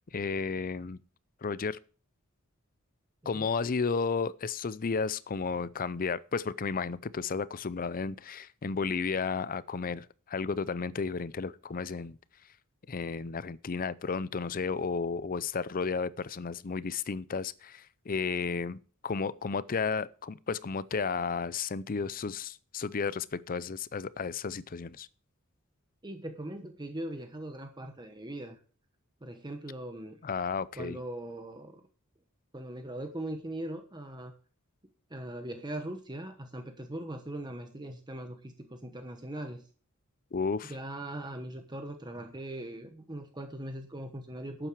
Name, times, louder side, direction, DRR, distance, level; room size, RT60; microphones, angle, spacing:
voice 1, 0.1-1.0 1.4-1.8 3.3-12.2 12.9-25.1 30.2-31.0 40.3-40.7, left 5 dB, 40° left, 0.5 m, -33 dB
voice 2, 26.0-28.6 29.2-30.2 30.8-31.8 32.5-34.3 35.1-39.6 40.7-44.7, right 1 dB, 20° right, 1.2 m, -40 dB
12.0 x 8.9 x 4.7 m
head